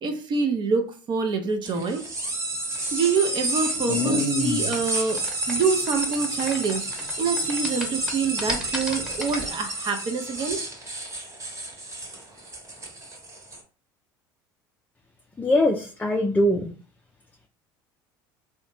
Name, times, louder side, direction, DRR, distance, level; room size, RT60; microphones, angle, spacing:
voice 1, 0.0-2.0 2.9-5.2 5.5-10.6, right 5 dB, 45° right, 6 dB, 0.5 m, -26 dB
sound 1, 1.6-13.6, right 2 dB, 30° right, 1.0 m, -30 dB
sound 2, 2.8-7.1 7.4-9.5, left 2 dB, 5° right, 1.0 m, -30 dB
voice 2, 15.4-16.7, left 1 dB, 15° left, 1 dB, 0.4 m, -22 dB
2.6 x 2.1 x 3.0 m, 0.38 s
hypercardioid pair, 80°, 11 cm